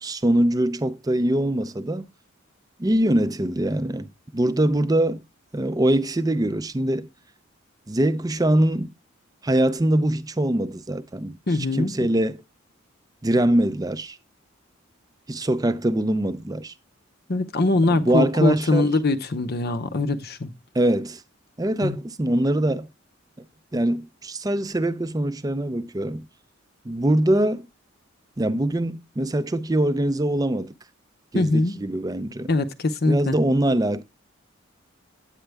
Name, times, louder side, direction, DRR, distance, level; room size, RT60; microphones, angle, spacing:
voice 1, 0.0-2.1 2.8-4.1 4.3-5.2 5.5-7.1 7.9-8.9 9.4-11.4 11.7-12.4 13.2-14.2 15.3-16.7 18.0-18.9 20.7-21.2 21.6-22.9 23.7-26.2 26.8-27.7 28.4-30.7 31.3-32.5 33.0-34.0, right 1 dB, 20° right, 0.5 m, -23 dB
voice 2, 11.5-12.0 17.3-20.5 21.8-22.0 31.3-31.8 32.5-33.4, left 2 dB, 50° left, 0.7 m, -22 dB
9.1 x 8.7 x 3.4 m
head